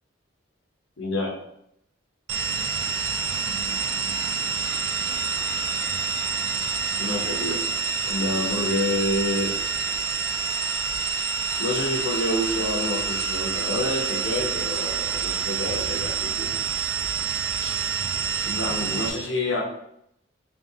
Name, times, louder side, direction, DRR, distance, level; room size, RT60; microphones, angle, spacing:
voice 1, 1.0-1.4 7.0-7.6 8.0-9.5 11.6-16.5 17.6-17.7 18.4-19.6, left 1 dB, 75° left, 0 dB, 0.9 m, -28 dB
sound 1, 2.3-19.1, right 5 dB, 80° right, 0.5 m, -27 dB
3.5 x 3.4 x 2.8 m, 0.77 s
head